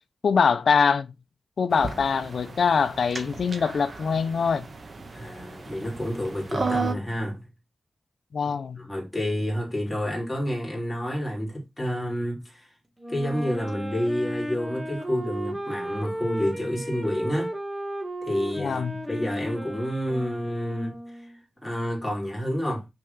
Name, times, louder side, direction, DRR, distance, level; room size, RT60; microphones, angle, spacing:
voice 1, 0.2-1.1 1.6-4.6 8.3-8.8 18.6-18.9, left 6 dB, 70° left, 0.8 m, -23 dB
sound 1, 1.7-6.9, right 4 dB, 45° right, 1.4 m, -34 dB
voice 2, 5.0-7.4 8.4-12.7 13.1-17.5 18.2-21.0 21.6-22.8, equal, 5° left, 3.5 m, -29 dB
Wind instrument woodwind instrument, 13.0-21.4, right 1 dB, 10° right, 2.0 m, -34 dB
6.2 x 4.9 x 5.6 m
wide cardioid pair, 110°, 0 cm